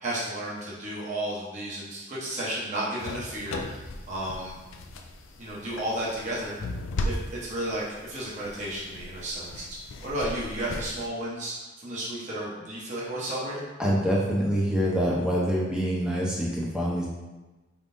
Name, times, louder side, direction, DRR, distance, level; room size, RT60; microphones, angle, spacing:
voice 1, 0.0-3.6 4.1-4.6 5.4-6.6 7.0-9.6 10.0-13.7, right 1 dB, 35° right, -7 dB, 0.9 m, -33 dB
sound 1, 3.0-11.1, left 2 dB, 70° left, 0.4 m, -37 dB
voice 2, 13.8-17.1, equal, 5° right, -5 dB, 0.7 m, -25 dB
4.6 x 3.7 x 2.6 m, 1.1 s
head